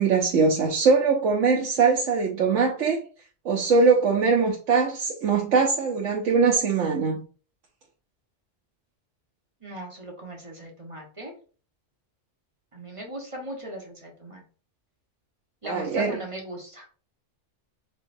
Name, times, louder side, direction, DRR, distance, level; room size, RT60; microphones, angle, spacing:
voice 1, 0.0-3.0 3.4-7.2 15.6-16.2, right 5 dB, 85° right, 1.2 m, -22 dB
voice 2, 9.6-11.3 12.7-14.4 15.6-16.9, equal, 25° right, 1.3 m, -38 dB
5.0 x 3.7 x 2.6 m
omnidirectional pair, 1.2 m